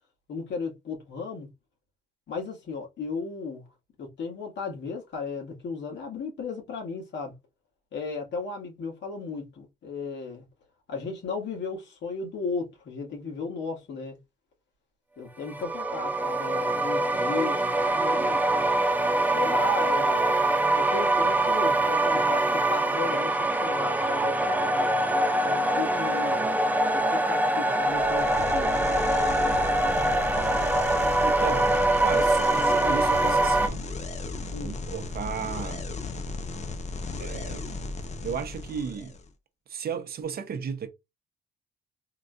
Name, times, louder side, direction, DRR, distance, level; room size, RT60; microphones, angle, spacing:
voice 1, 0.3-1.5 2.3-3.6 4.0-7.3 7.9-10.4 10.9-14.2 15.2-18.4 19.3-20.4 20.8-24.7 25.4-26.4 26.9-28.8 34.5-34.8, left 4 dB, 65° left, 1.9 m, -35 dB
sound 1, 15.5-33.7, right 2 dB, 10° right, 0.6 m, -24 dB
sound 2, 27.8-39.3, left 3 dB, 35° left, 0.8 m, -35 dB
voice 2, 31.2-33.8 34.6-35.9 37.2-37.7 38.2-39.2 39.7-40.9, right 7 dB, 50° right, 0.8 m, -34 dB
3.7 x 3.1 x 2.4 m
cardioid pair, 90°, 20 cm